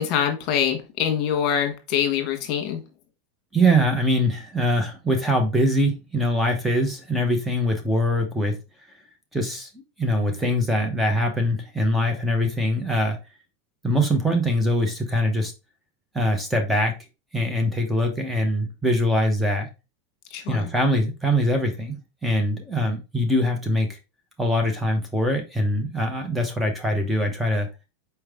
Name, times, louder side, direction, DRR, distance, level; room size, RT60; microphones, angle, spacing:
voice 1, 0.0-2.8 20.3-20.7, left 8 dB, 50° left, 1.4 m, -24 dB
voice 2, 3.5-8.6 9.3-9.7 10.0-13.2 13.8-15.5 16.1-16.9 17.3-19.7 20.5-21.9 22.2-23.9 24.4-27.7, equal, 5° right, 0.9 m, -23 dB
4.6 x 3.2 x 3.6 m
supercardioid pair, 125°, 0 cm